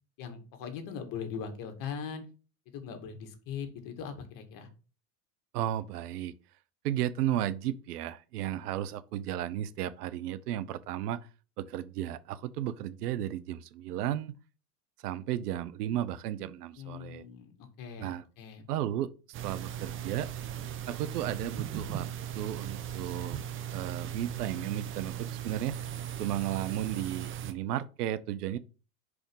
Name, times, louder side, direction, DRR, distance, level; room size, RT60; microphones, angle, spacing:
voice 1, 0.2-2.2 2.7-4.7 16.8-18.7, left 7 dB, 45° left, 2.2 m, -40 dB
voice 2, 5.5-6.3 6.8-11.2 11.6-14.4 15.0-17.2 18.0-18.2 18.7-19.1 19.4-20.3 20.9-22.1 22.3-23.4 23.7-25.8 26.2-28.6, right 12 dB, 75° right, 0.9 m, -34 dB
sound 1, 19.3-27.5, right 10 dB, 25° right, 0.8 m, -38 dB
5.2 x 4.9 x 6.3 m
hypercardioid pair, 115°, 46 cm